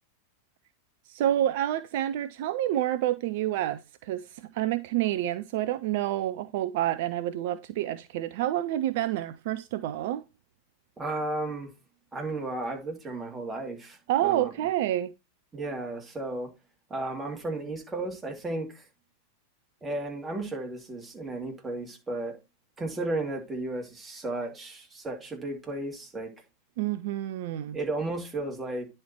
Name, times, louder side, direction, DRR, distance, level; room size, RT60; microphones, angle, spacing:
voice 1, 1.1-10.2 14.1-15.1 26.8-27.8, right 13 dB, 50° right, 0.4 m, -28 dB
voice 2, 11.0-11.7 12.1-14.5 15.5-16.5 16.9-18.8 19.8-22.4 22.8-26.3 27.7-28.9, right 2 dB, 15° right, 2.6 m, -34 dB
10.0 x 4.3 x 4.4 m
figure-of-eight pair, 90°, 0 cm